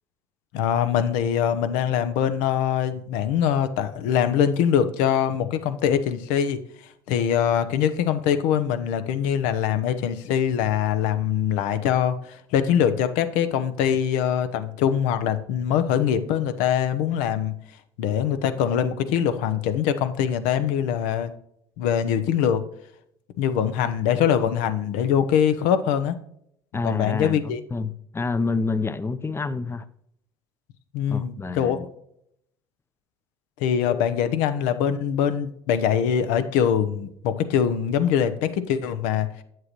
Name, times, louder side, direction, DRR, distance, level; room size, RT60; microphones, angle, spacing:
voice 1, 0.5-6.6 7.1-17.5 18.0-21.3 21.8-22.6 23.4-26.2 26.8-27.6 30.9-31.8 33.6-39.3, left 9 dB, 70° left, 0.8 m, -23 dB
voice 2, 26.7-29.8 31.1-31.9 33.9-34.0, left 4 dB, 20° left, 0.6 m, -28 dB
8.5 x 7.7 x 3.0 m
hypercardioid pair, 65°, 14 cm